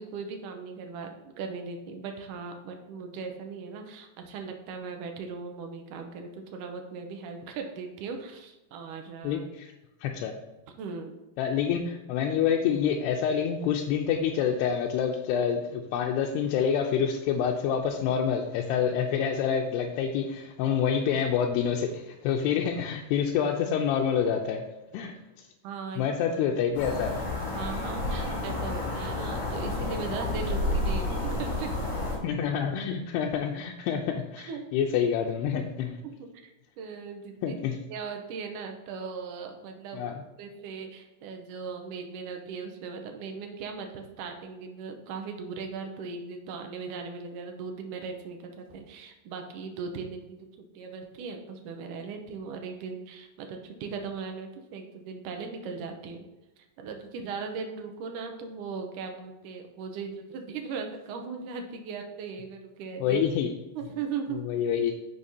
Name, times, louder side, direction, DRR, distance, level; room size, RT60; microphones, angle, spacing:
voice 1, 0.0-9.4 10.8-11.1 25.6-26.1 27.5-31.7 34.4-34.7 36.0-37.6 37.9-40.1 40.4-50.5 50.7-56.3 56.6-63.2 63.7-64.4, right 5 dB, 75° right, 4 dB, 1.9 m, -38 dB
voice 2, 9.2-9.7 10.0-10.4 11.4-24.6 24.9-25.2 26.0-27.1 32.2-36.0 37.4-37.8 39.9-40.2 63.0-63.5 64.5-64.9, left 7 dB, 90° left, 1 dB, 2.7 m, -27 dB
sound 1, 26.7-32.2, left 2 dB, 55° left, 3.9 m, -30 dB
10.5 x 6.5 x 2.8 m, 0.99 s
omnidirectional pair, 4.7 m